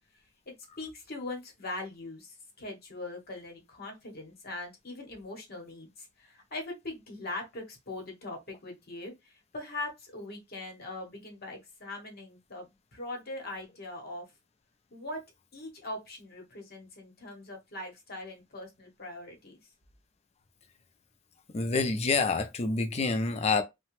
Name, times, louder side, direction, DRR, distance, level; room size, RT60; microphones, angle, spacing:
voice 1, 0.5-14.3 14.9-15.2 15.5-19.6, left 2 dB, 50° left, 1.0 m, -41 dB
voice 2, 21.5-23.6, left 4 dB, 30° left, 0.5 m, -27 dB
2.9 x 2.1 x 3.0 m
head